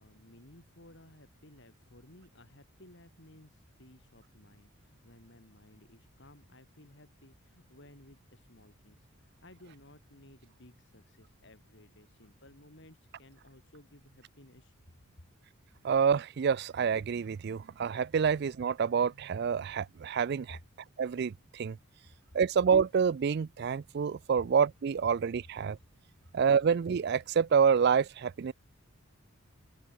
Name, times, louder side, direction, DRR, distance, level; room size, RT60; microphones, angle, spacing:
voice 1, 0.0-14.7 20.5-20.6, left 1 dB, 55° left, 4.6 m, -57 dB
voice 2, 15.8-20.6 21.0-21.8 22.3-25.8 26.3-28.5, right 6 dB, 50° right, 0.3 m, -27 dB
open air
head